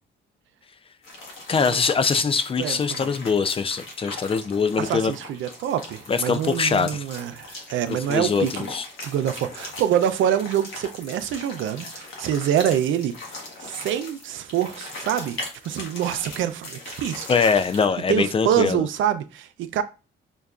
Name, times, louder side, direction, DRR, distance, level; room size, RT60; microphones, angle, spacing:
sound 1, 1.0-18.0, left 2 dB, 85° left, 1.2 m, -39 dB
voice 1, 1.5-5.1 6.1-7.0 8.1-8.9 17.3-18.8, left 5 dB, 30° left, 0.3 m, -23 dB
voice 2, 2.6-3.2 4.8-8.7 9.0-13.1 13.6-17.6 18.1-19.8, right 10 dB, 75° right, 0.5 m, -26 dB
5.3 x 2.2 x 2.3 m
cardioid pair, 90°, 20 cm